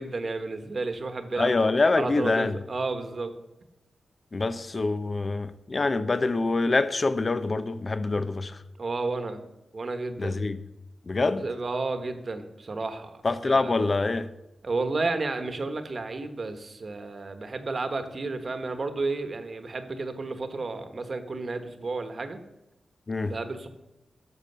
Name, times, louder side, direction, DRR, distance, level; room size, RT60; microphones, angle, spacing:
voice 1, 0.0-1.5 2.0-3.3 8.8-9.4 9.7-10.4 11.4-13.7 14.6-22.4 23.2-23.7, right 3 dB, 50° right, 1.3 m, -32 dB
voice 2, 1.4-2.6 4.3-8.6 10.2-10.6 11.1-11.4 13.2-14.3 23.1-23.3, left 3 dB, 40° left, 0.7 m, -25 dB
11.5 x 6.8 x 6.8 m
cardioid pair, 75°, 0 cm